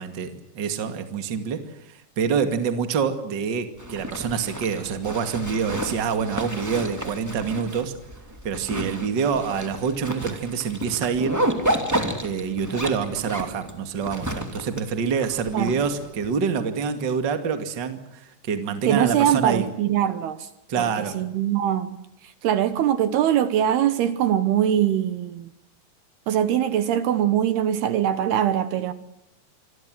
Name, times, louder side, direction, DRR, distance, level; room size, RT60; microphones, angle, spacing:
voice 1, 0.0-1.6 1.9-7.9 8.4-11.4 12.2-19.7 20.7-21.2, right 6 dB, 35° right, 2.0 m, -26 dB
Zipper (clothing), 3.8-16.3, right 1 dB, 5° right, 1.5 m, -31 dB
voice 2, 18.8-20.5 20.8-20.9 21.1-22.0 22.4-25.5 26.3-28.9, right 10 dB, 70° right, 2.9 m, -22 dB
27.0 x 22.0 x 7.8 m
omnidirectional pair, 5.1 m